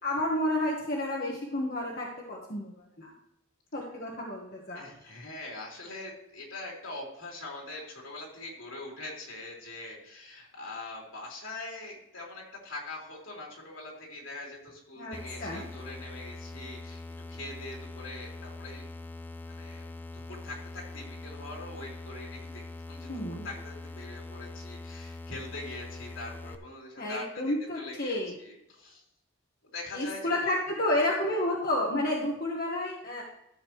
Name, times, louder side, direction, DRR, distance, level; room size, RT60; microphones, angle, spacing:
voice 1, 0.0-2.7 3.0-3.1 3.7-4.8 15.0-15.1 15.4-15.6 23.1-23.5 27.0-28.3 29.9-33.2, left 1 dB, 45° left, -2 dB, 1.4 m, -30 dB
voice 2, 4.7-18.8 19.5-22.6 22.9-29.0 29.7-30.6 30.9-31.5, left 2 dB, 70° left, -2 dB, 3.5 m, -43 dB
sound 1, 15.1-26.6, left 2 dB, 10° left, 0.4 m, -43 dB
13.5 x 7.6 x 3.1 m, 0.84 s
head